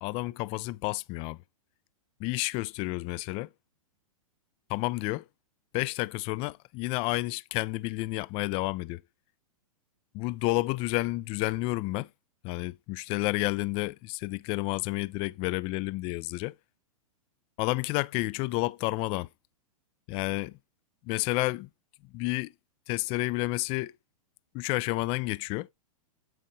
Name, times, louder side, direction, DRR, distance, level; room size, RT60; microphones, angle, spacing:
voice 1, 0.0-1.4 2.2-3.5 4.7-5.3 5.7-9.0 10.1-12.1 12.4-16.6 17.6-19.3 20.1-20.6 21.0-21.7 22.1-22.5 22.9-23.9 24.5-25.7, left 21 dB, 30° left, 0.4 m, -30 dB
9.1 x 8.3 x 2.7 m
hypercardioid pair, 110°, 19 cm